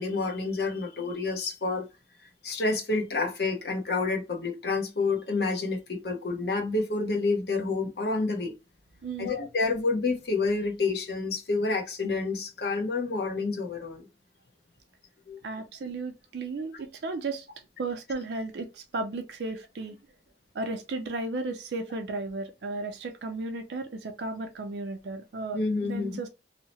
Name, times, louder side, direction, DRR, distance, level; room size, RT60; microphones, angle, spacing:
voice 1, 0.0-1.9 2.4-8.5 9.2-14.1 15.3-15.4 25.5-26.2, left 3 dB, 60° left, 0.7 m, -29 dB
voice 2, 9.0-9.3 15.4-17.5 17.8-20.0 20.5-26.3, right 3 dB, 70° right, 0.4 m, -34 dB
2.7 x 2.0 x 2.9 m
head